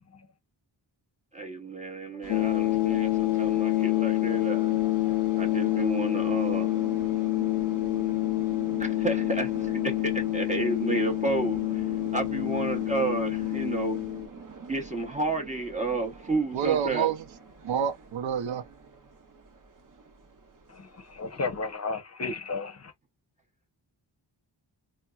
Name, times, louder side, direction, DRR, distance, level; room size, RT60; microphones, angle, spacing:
voice 1, 1.3-4.7 5.4-6.7 8.8-11.8 12.1-14.0 14.7-17.1, right 3 dB, 15° right, 0.9 m, -31 dB
sound 1, 2.2-21.7, right 4 dB, 45° right, 0.8 m, -43 dB
sound 2, 2.3-14.3, left 19 dB, 75° left, 0.5 m, -27 dB
voice 2, 16.5-17.2 17.6-18.7, right 8 dB, 75° right, 0.6 m, -27 dB
voice 3, 20.7-22.9, left 4 dB, 35° left, 0.7 m, -33 dB
4.3 x 2.1 x 2.3 m
wide cardioid pair, 90°, 47 cm